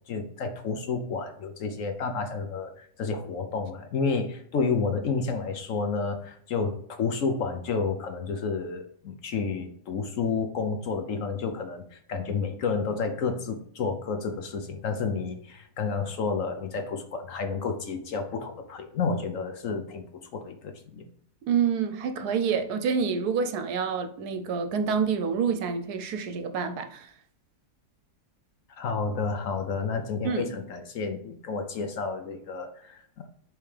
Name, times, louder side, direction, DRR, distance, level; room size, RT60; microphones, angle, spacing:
voice 1, 0.1-20.0 20.3-21.1 28.8-33.2, left 5 dB, 60° left, 0.9 m, -30 dB
voice 2, 21.4-27.1 30.2-30.4, right 6 dB, 75° right, 1.2 m, -27 dB
8.5 x 3.4 x 3.3 m
omnidirectional pair, 1.7 m